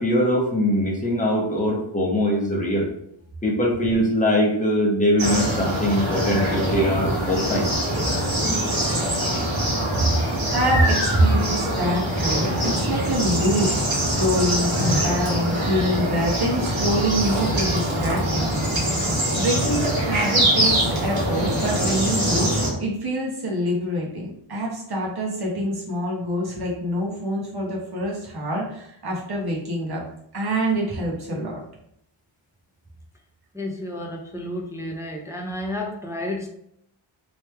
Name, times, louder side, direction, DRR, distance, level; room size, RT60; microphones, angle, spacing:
voice 1, 0.0-2.9 3.4-7.7 8.4-8.6, equal, 15° left, -2 dB, 0.9 m, -22 dB
sound 1, 5.2-22.7, right 1 dB, 65° right, 1.4 m, -23 dB
voice 2, 10.5-30.0 30.3-31.6, equal, 50° right, -3 dB, 1.2 m, -25 dB
voice 3, 33.5-36.5, left 1 dB, 5° right, 1 dB, 0.4 m, -31 dB
3.2 x 3.0 x 3.3 m, 0.73 s
wide cardioid pair, 140°, 49 cm